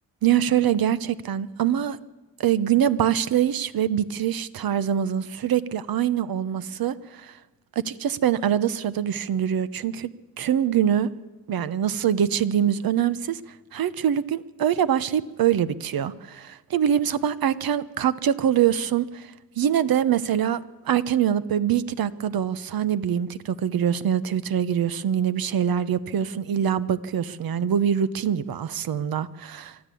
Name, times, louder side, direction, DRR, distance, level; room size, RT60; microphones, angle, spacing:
voice 1, 0.2-2.0 2.4-7.3 7.8-10.1 10.4-11.1 11.5-13.4 13.7-19.3 19.6-29.9, right 9 dB, 75° right, 15 dB, 1.0 m, -24 dB
24.0 x 13.0 x 8.5 m, 1.2 s
wide cardioid pair, 140°, 36 cm